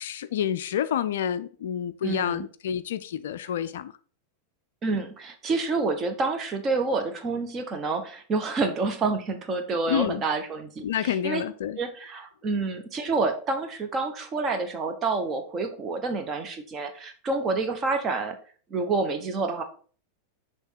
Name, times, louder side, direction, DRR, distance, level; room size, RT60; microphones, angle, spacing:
voice 1, 0.0-3.9 9.9-10.2 10.8-11.8, left 9 dB, 60° left, 0.3 m, -28 dB
voice 2, 2.0-2.5 4.8-11.4 11.8-18.4 18.7-19.6, right 3 dB, 25° right, 1.1 m, -28 dB
6.3 x 3.4 x 5.1 m
figure-of-eight pair, 90°, 0 cm